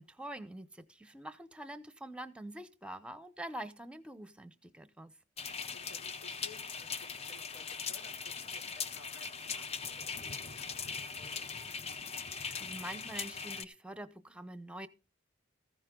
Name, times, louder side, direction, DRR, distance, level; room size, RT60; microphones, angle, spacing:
voice 1, 0.0-5.1 12.3-14.9, right 1 dB, 5° right, 0.8 m, -45 dB
sound 1, 5.4-13.6, left 5 dB, 30° left, 0.7 m, -40 dB
voice 2, 5.5-11.5, left 4 dB, 85° left, 3.0 m, -58 dB
15.0 x 10.5 x 3.8 m
head